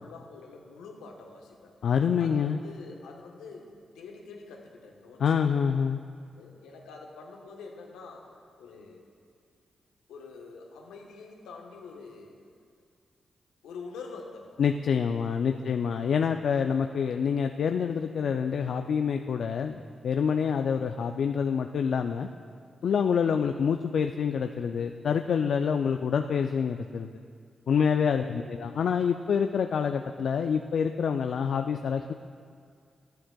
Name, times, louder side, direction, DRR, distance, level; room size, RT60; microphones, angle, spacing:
voice 1, 0.0-1.7 2.2-5.8 6.3-9.0 10.1-12.4 13.6-16.2 20.2-20.6 22.8-23.0 27.8-28.1, left 4 dB, 90° left, 1 dB, 1.1 m, -46 dB
voice 2, 1.8-2.6 5.2-6.0 14.6-22.3 22.8-27.1 27.7-32.1, left 7 dB, 70° left, 6 dB, 0.3 m, -27 dB
14.0 x 11.5 x 2.3 m, 2.2 s
supercardioid pair, 40°, 0 cm